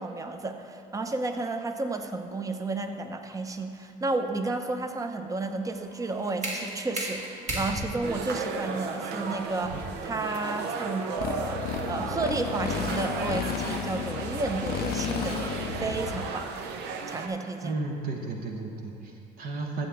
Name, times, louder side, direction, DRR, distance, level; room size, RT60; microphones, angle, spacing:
voice 1, 0.0-15.5 15.8-16.5 17.1-17.7, right 3 dB, 20° right, 7 dB, 0.7 m, -32 dB
sound 1, 5.7-11.5, right 1 dB, 45° right, 1.9 m, -37 dB
sound 2, 8.0-17.3, right 5 dB, 85° right, 0.7 m, -35 dB
Motorcycle, 11.2-16.3, left 10 dB, 65° left, 0.4 m, -33 dB
voice 2, 17.6-19.9, right 3 dB, 60° right, 1 dB, 1.1 m, -33 dB
12.5 x 7.6 x 3.5 m, 2.5 s
cardioid pair, 110°, 17 cm